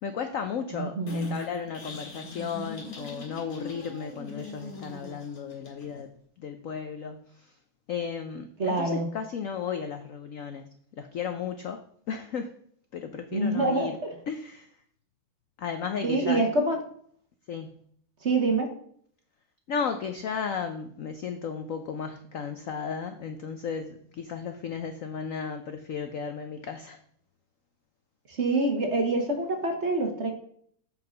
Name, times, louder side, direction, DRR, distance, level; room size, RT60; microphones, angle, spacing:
voice 1, 0.0-6.1 6.4-7.5 7.9-12.5 12.9-14.0 14.3-14.7 15.6-16.4 17.5-17.8 19.7-27.0, left 6 dB, 70° left, 8 dB, 0.7 m, -34 dB
voice 2, 0.7-1.3 8.6-9.1 13.3-14.1 16.0-16.8 18.2-18.7 28.3-30.3, right 2 dB, 40° right, 3 dB, 1.3 m, -26 dB
sound 1, 1.1-6.1, left 3 dB, 50° left, 2.2 m, -42 dB
7.8 x 5.7 x 5.1 m, 0.62 s
omnidirectional pair, 2.1 m